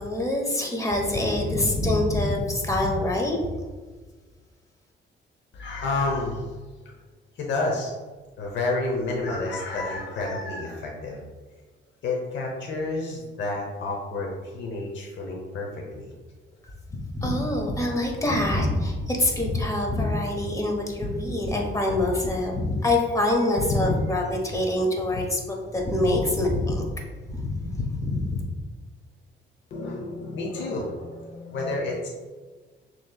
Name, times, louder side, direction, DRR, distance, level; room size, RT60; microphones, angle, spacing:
voice 1, 0.0-3.4 16.9-26.8 27.3-28.4, left 1 dB, 15° left, 1 dB, 1.0 m, -25 dB
voice 2, 5.5-6.6 7.3-7.9 8.4-11.2 12.0-16.1 29.7-32.1, left 2 dB, 70° left, -1 dB, 0.8 m, -30 dB
6.3 x 3.1 x 2.3 m, 1.4 s
cardioid pair, 105°, 20 cm